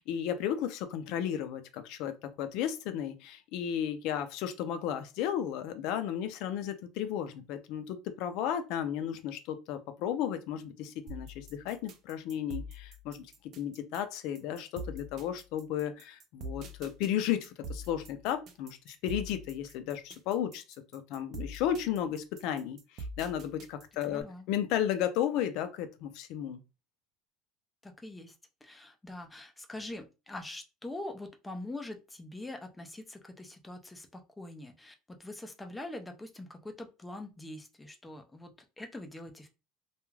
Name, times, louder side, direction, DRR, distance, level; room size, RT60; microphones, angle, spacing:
voice 1, 0.1-13.3 13.6-20.6 20.9-26.6, left 10 dB, 65° left, 0.5 m, -34 dB
sound 1, 11.1-24.2, right 1 dB, 45° right, 0.5 m, -44 dB
voice 2, 24.1-24.5 27.8-28.3 28.6-39.5, left 2 dB, 10° left, 0.5 m, -44 dB
2.3 x 2.3 x 3.1 m
cardioid pair, 135°, 0 cm